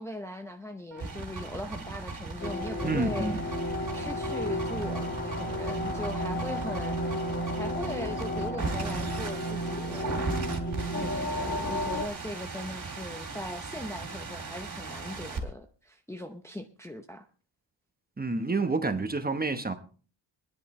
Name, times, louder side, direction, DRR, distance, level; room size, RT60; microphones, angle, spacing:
voice 1, 0.0-7.0 7.6-10.3 11.0-17.3, left 1 dB, 5° left, 0.7 m, -40 dB
sound 1, 0.9-15.4, right 3 dB, 40° right, 2.8 m, -38 dB
sound 2, 2.4-12.1, equal, 35° left, 2.5 m, -33 dB
voice 2, 2.8-3.3 18.2-19.7, right 3 dB, 20° right, 1.1 m, -28 dB
24.0 x 10.5 x 3.2 m
wide cardioid pair, 160°, 47 cm